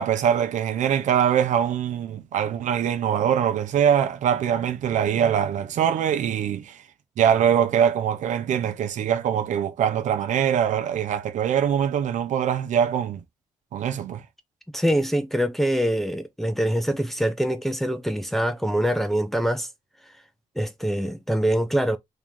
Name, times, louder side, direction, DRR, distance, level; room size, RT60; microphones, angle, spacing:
voice 1, 0.0-6.8 7.2-13.2 13.7-14.2, right 9 dB, 75° right, 0.8 m, -23 dB
voice 2, 14.7-19.7 20.6-22.0, equal, ahead, 0.7 m, -24 dB
3.0 x 2.9 x 3.6 m
cardioid pair, 95°, 13 cm